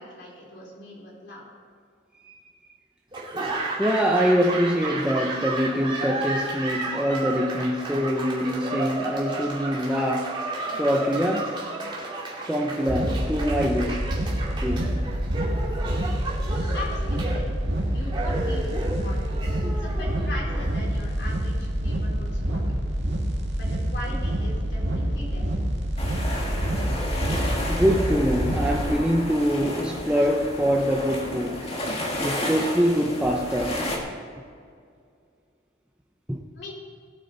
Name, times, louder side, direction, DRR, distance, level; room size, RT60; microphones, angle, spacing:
voice 1, 0.0-1.5 16.7-17.5 17.9-19.4 19.6-22.6 23.5-25.5 36.6-36.7, left 1 dB, 60° left, -3 dB, 3.9 m, -39 dB
Laughter / Applause, 3.1-21.2, right 2 dB, 25° right, 2.5 m, -33 dB
voice 2, 3.8-10.4 10.8-11.6 12.5-14.0 14.6-14.9 24.1-24.2 27.7-31.7 32.2-33.9 36.3-36.4, equal, 5° right, -2 dB, 0.8 m, -24 dB
sound 1, 12.9-28.9, right 1 dB, 60° right, 2.1 m, -27 dB
sound 2, 26.0-34.0, left 1 dB, 30° left, 1.8 m, -32 dB
19.5 x 8.8 x 4.0 m, 2.2 s
head